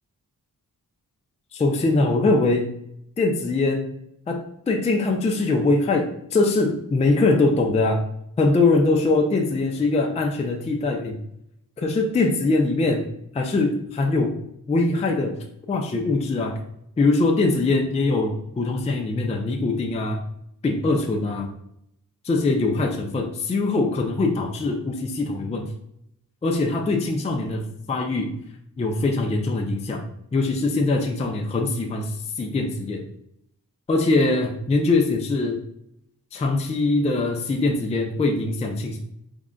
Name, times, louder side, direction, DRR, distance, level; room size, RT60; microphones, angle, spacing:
voice 1, 1.5-2.8 3.2-3.9 4.3-8.0 8.4-11.2 11.8-13.0 13.3-14.4 14.7-15.4 15.7-16.6 17.0-20.2 20.6-21.5 22.2-25.7 26.4-28.4 28.8-30.0 30.3-33.0 33.9-35.6 36.3-39.0, left 3 dB, 20° left, 2 dB, 0.4 m, -22 dB
3.6 x 2.1 x 3.7 m, 0.76 s
wide cardioid pair, 140°, 35 cm